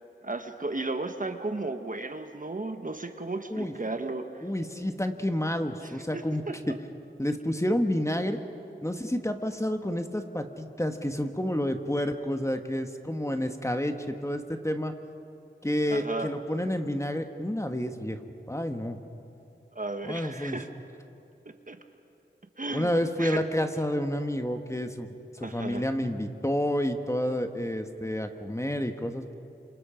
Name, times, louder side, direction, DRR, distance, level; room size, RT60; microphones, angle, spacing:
voice 1, 0.2-4.5 5.8-6.6 15.9-16.3 19.7-20.7 21.4-21.8 22.6-22.9 23.2-23.4 25.4-25.9, right 2 dB, 40° right, 7 dB, 1.4 m, -34 dB
voice 2, 4.4-6.7 7.2-8.4 8.8-14.9 15.6-18.2 18.5-19.0 20.0-20.6 22.7-25.1 25.4-29.3, equal, 15° left, 6 dB, 1.4 m, -29 dB
28.5 x 27.0 x 5.1 m, 2.6 s
wide cardioid pair, 50°, 21 cm